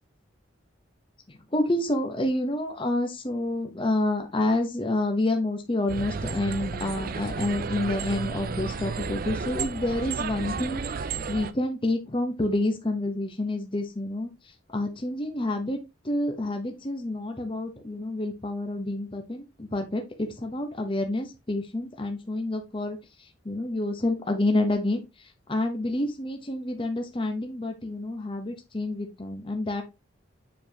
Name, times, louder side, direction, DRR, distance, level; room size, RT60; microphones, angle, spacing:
voice 1, 1.3-15.8 16.0-29.8, left 1 dB, 25° left, 4 dB, 0.8 m, -28 dB
sound 1, 5.9-11.5, right 5 dB, 45° right, 0.4 m, -32 dB
7.3 x 4.5 x 2.8 m, 0.24 s
head